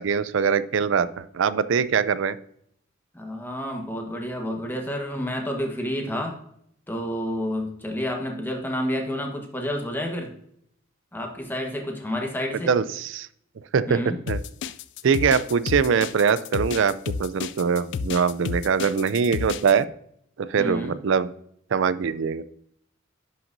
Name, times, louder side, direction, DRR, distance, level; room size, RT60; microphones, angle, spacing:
voice 1, 0.0-2.4 12.7-13.3 13.7-14.0 14.3-14.4 15.0-19.9 20.4-21.3 21.7-22.4, right 6 dB, 65° right, 15 dB, 0.4 m, -22 dB
voice 2, 3.1-6.4 6.9-10.3 11.1-12.7 13.9-14.2 20.6-20.9, equal, 10° left, 1 dB, 1.2 m, -29 dB
sound 1, 14.3-19.7, left 5 dB, 60° left, 0.3 m, -31 dB
10.5 x 5.8 x 2.6 m, 0.70 s
head